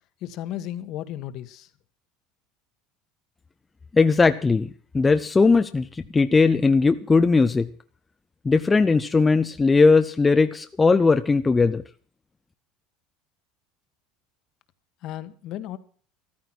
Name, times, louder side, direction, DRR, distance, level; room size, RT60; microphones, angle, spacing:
voice 1, 0.2-1.7 15.0-15.8, left 12 dB, 50° left, 11 dB, 1.4 m, -34 dB
voice 2, 3.9-4.7 4.9-7.7 8.4-11.8, left 4 dB, 15° left, 9 dB, 0.6 m, -19 dB
14.0 x 13.0 x 6.1 m, 0.42 s
cardioid pair, 145°, 0 cm